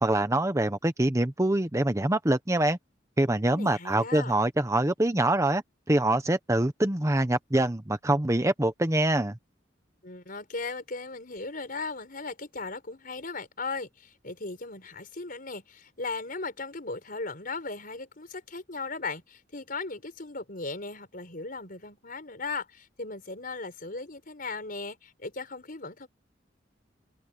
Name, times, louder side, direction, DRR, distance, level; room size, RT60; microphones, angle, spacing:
voice 1, 0.0-2.8 3.2-5.6 5.9-9.4, right 1 dB, 15° right, 1.0 m, -25 dB
voice 2, 3.5-4.3 10.0-26.1, left 3 dB, 50° left, 5.0 m, -37 dB
head